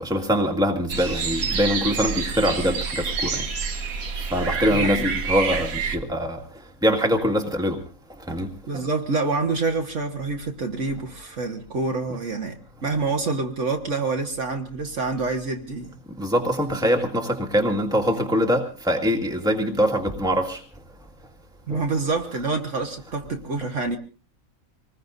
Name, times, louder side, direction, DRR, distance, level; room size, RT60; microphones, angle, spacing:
voice 1, 0.0-3.4 4.2-6.4 6.8-7.8 8.3-8.9 16.2-20.6 21.7-21.8, equal, 5° right, 1.9 m, -23 dB
sound 1, 0.9-6.0, right 5 dB, 80° right, 1.8 m, -27 dB
voice 2, 4.7-5.2 8.7-16.0 16.7-16.8 21.7-24.0, right 3 dB, 60° right, 1.7 m, -27 dB
26.0 x 20.0 x 2.7 m
omnidirectional pair, 1.5 m